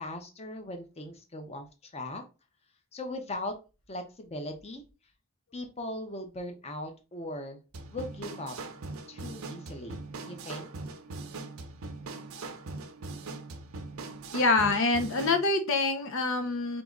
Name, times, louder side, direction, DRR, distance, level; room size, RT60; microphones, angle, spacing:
voice 1, 0.0-2.2 2.9-3.5 3.9-4.8 5.5-7.6 7.9-8.5 9.1-10.7, left 1 dB, 30° left, 5 dB, 0.8 m, -39 dB
sound 1, 7.7-15.4, right 3 dB, 90° right, 0.6 m, -41 dB
voice 2, 14.3-16.8, left 3 dB, 70° left, 6 dB, 0.7 m, -26 dB
3.8 x 3.0 x 3.7 m, 0.30 s
head